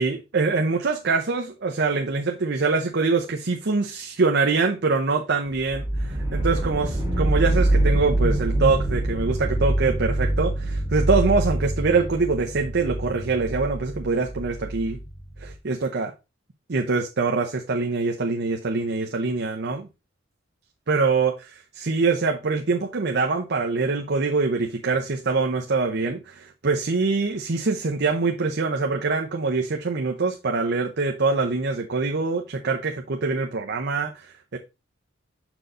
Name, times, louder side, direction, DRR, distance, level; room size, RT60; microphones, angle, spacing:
voice 1, 0.0-15.0 15.4-16.1 16.7-19.9 20.9-34.6, right 4 dB, 55° right, 0.7 m, -24 dB
sound 1, 5.7-15.5, right 1 dB, 15° right, 2.2 m, -25 dB
6.6 x 4.5 x 3.8 m
head